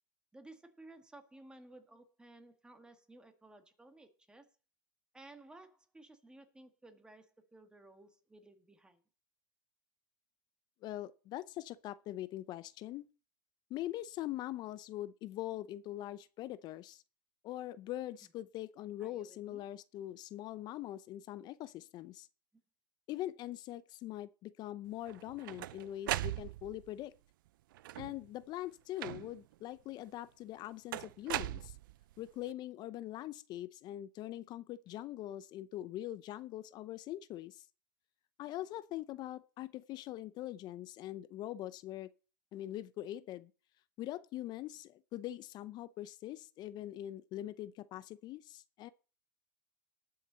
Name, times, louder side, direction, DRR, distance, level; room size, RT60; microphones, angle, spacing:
voice 1, 0.3-4.5 5.1-9.0 19.0-19.6, right 2 dB, 5° right, 1.9 m, -57 dB
voice 2, 10.8-13.0 13.7-17.0 17.4-22.3 23.1-27.1 27.9-31.8 32.2-37.7 38.4-42.1 42.5-43.5 44.0-48.9, left 14 dB, 40° left, 0.6 m, -43 dB
sound 1, 25.1-26.9 27.7-28.3 29.0-29.5 30.9-32.2, right 15 dB, 70° right, 0.5 m, -39 dB
19.0 x 6.6 x 4.1 m
hypercardioid pair, 120°, 11 cm